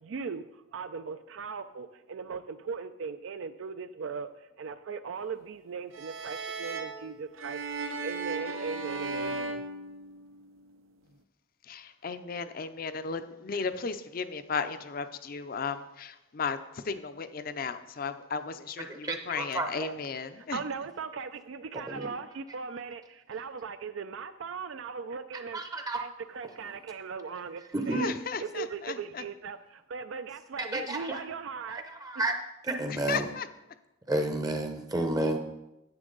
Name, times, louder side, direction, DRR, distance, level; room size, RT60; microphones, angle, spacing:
voice 1, 0.0-7.6 8.0-9.6 20.4-28.1 28.4-31.8, right 5 dB, 75° right, 10 dB, 0.4 m, -39 dB
sound 1, 5.9-10.5, right 3 dB, 90° right, 0.9 m, -36 dB
voice 2, 11.6-20.6 27.9-29.2 32.9-33.5, left 5 dB, 45° left, 11 dB, 0.5 m, -35 dB
voice 3, 18.9-19.7 21.9-22.1 25.5-26.0 27.7-28.1 30.6-31.2 31.7-32.3 32.6-33.3 34.1-35.4, right 1 dB, 20° right, 6 dB, 0.6 m, -31 dB
9.9 x 8.1 x 3.9 m, 0.96 s
head